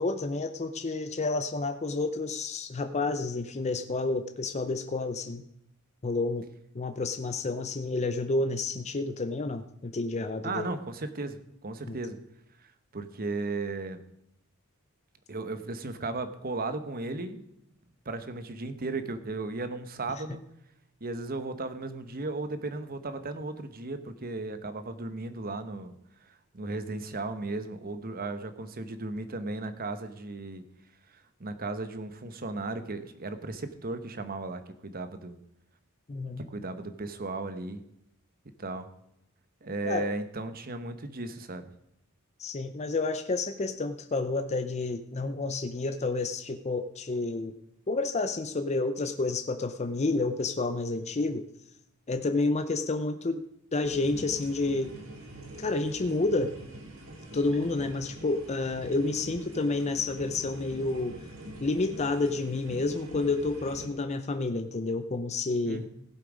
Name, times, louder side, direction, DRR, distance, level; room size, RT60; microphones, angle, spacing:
voice 1, 0.0-5.4 6.0-6.4 6.7-10.7 11.9-12.0 36.1-36.4 39.8-40.1 42.4-47.5 47.9-51.4 52.1-53.4 53.7-54.9 55.6-56.5 57.3-61.1 61.6-65.8, left 3 dB, 30° left, 9 dB, 0.6 m, -30 dB
voice 2, 10.4-12.2 12.6-14.0 15.3-17.5 18.0-20.4 21.0-30.6 31.1-35.4 36.4-37.8 38.6-38.9 39.6-41.7 65.7-65.9, right 2 dB, 45° right, 10 dB, 1.1 m, -36 dB
sound 1, 53.8-63.9, right 1 dB, 65° right, 2.3 m, -44 dB
17.0 x 7.6 x 5.0 m, 0.78 s
head